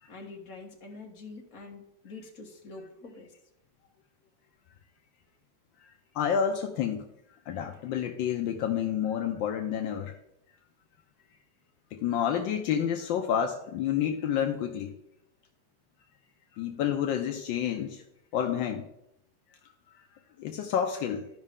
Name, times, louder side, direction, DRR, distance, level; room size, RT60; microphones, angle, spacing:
voice 1, 0.1-3.3, left 3 dB, 50° left, 0 dB, 1.8 m, -45 dB
voice 2, 6.1-7.0 7.5-10.1 11.9-14.9 16.5-18.0 18.3-18.9 20.4-21.3, left 8 dB, 80° left, 4 dB, 1.4 m, -29 dB
12.5 x 5.4 x 3.6 m, 0.80 s
omnidirectional pair, 2.0 m